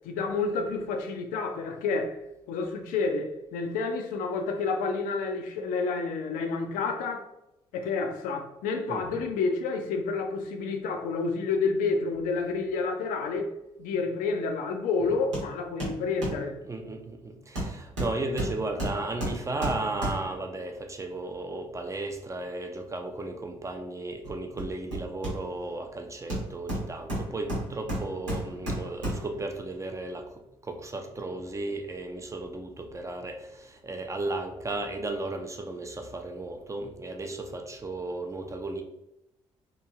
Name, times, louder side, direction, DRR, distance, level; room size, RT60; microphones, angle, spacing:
voice 1, 0.0-2.2 2.5-7.2 7.7-13.5 13.8-16.6, left 4 dB, 60° left, 0.5 m, -29 dB
voice 2, 8.9-9.2 16.7-38.8, right 2 dB, 20° right, 0.5 m, -35 dB
Hammer, 15.3-15.5 15.8-16.5 17.6-20.5 24.2-25.7 26.3-29.4 29.8-29.9, right 1 dB, 85° right, 0.9 m, -33 dB
3.0 x 2.5 x 2.3 m
figure-of-eight pair, 40°, 16 cm